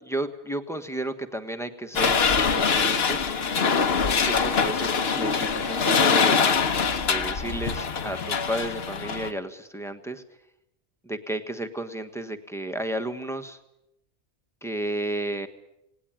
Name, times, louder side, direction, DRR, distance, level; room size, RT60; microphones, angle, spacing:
voice 1, 0.0-2.2 2.5-3.3 4.3-6.7 7.0-10.2 11.0-13.6 14.6-15.5, right 1 dB, 5° left, 6 dB, 1.2 m, -32 dB
sound 1, 2.0-9.3, left 5 dB, 70° left, 1.3 m, -23 dB
19.5 x 18.5 x 8.9 m, 0.85 s
omnidirectional pair, 1.1 m